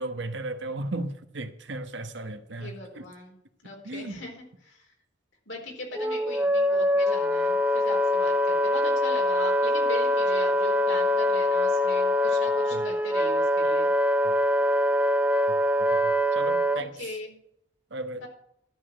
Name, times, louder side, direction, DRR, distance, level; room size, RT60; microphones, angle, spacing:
voice 1, 0.0-3.1 3.8-4.2 12.7-12.9 14.2-14.3 15.9-17.1 17.9-18.2, right 2 dB, 70° right, 9 dB, 1.1 m, -35 dB
voice 2, 2.6-3.4 3.6-4.9 5.5-13.9 16.7-17.4 18.1-18.3, left 2 dB, 85° left, 0 dB, 3.9 m, -39 dB
Wind instrument woodwind instrument, 5.9-16.8, left 1 dB, 10° right, 0.5 m, -24 dB
12.5 x 5.0 x 7.5 m, 0.73 s
head